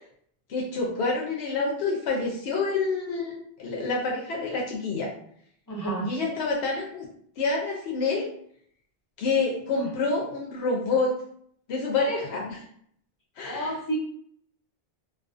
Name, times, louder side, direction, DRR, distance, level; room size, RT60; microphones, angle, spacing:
voice 1, 0.5-5.1 6.0-7.1 7.4-8.3 9.2-11.1 11.7-12.6 13.4-13.7, left 3 dB, 90° left, -2 dB, 0.8 m, -27 dB
voice 2, 5.7-6.1 9.8-9.9 13.4-14.0, right 2 dB, 20° left, -5 dB, 0.8 m, -30 dB
2.4 x 2.3 x 2.4 m, 0.65 s
omnidirectional pair, 1.0 m